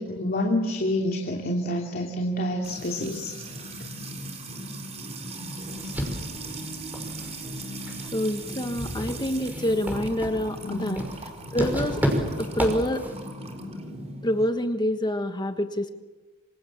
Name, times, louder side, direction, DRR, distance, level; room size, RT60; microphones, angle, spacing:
voice 1, 0.0-3.4 5.5-5.7 10.6-10.9, left 1 dB, 45° left, 1 dB, 2.8 m, -28 dB
Music / Water tap faucet / Trickle dribble, 2.6-14.4, right 1 dB, 30° right, 4.0 m, -38 dB
sound 1, 5.6-13.3, equal, 10° right, 5.9 m, -32 dB
voice 2, 8.1-11.0 11.5-12.1 12.4-13.1 14.2-15.9, left 1 dB, 20° left, 7 dB, 1.3 m, -27 dB
27.5 x 26.5 x 7.4 m, 1.2 s
head